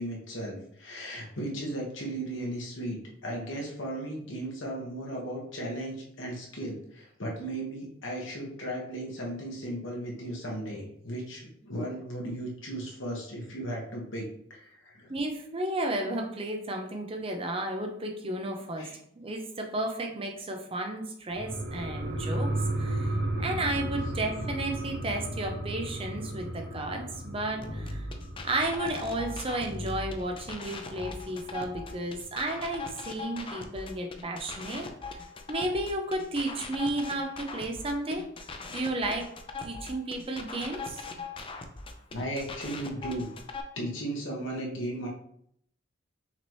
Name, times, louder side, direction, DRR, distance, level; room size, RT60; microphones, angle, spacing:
voice 1, 0.0-15.1 18.8-19.0 42.1-43.3 43.7-45.1, right 1 dB, 75° left, -2 dB, 1.4 m, -36 dB
voice 2, 15.1-28.1 28.4-34.9 35.5-38.3 38.7-39.3 39.6-41.0, right 1 dB, 30° right, 3 dB, 0.6 m, -33 dB
sound 1, 21.3-30.4 30.8-30.9, right 1 dB, 80° right, 0.9 m, -34 dB
sound 2, 27.6-43.6, left 3 dB, 25° left, 0.4 m, -40 dB
5.9 x 2.9 x 3.1 m, 0.70 s
head